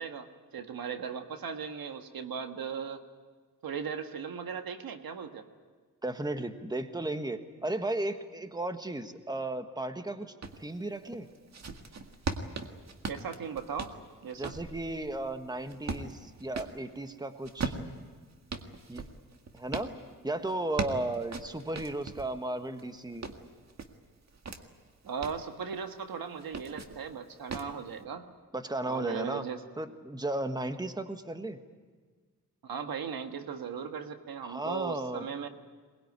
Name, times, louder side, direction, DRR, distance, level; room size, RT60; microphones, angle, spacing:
voice 1, 0.0-3.0 3.6-5.4 13.1-13.9 14.2-14.5 25.0-28.2 28.9-29.6 32.6-35.5, right 6 dB, 80° right, 7 dB, 1.6 m, -37 dB
voice 2, 6.0-10.3 10.6-11.3 14.4-17.7 18.9-19.0 19.5-19.9 20.2-23.3 28.5-29.4 29.8-31.6 34.4-35.2, right 2 dB, 10° right, 8 dB, 1.4 m, -35 dB
sound 1, 10.4-10.6 11.2-16.8 17.4-19.9 20.5-22.3 22.8-24.6 25.0-25.4 26.4-27.0 27.5-27.8, right 4 dB, 50° right, 1.9 m, -39 dB
22.0 x 20.5 x 9.6 m, 1.5 s
wide cardioid pair, 100°, 35 cm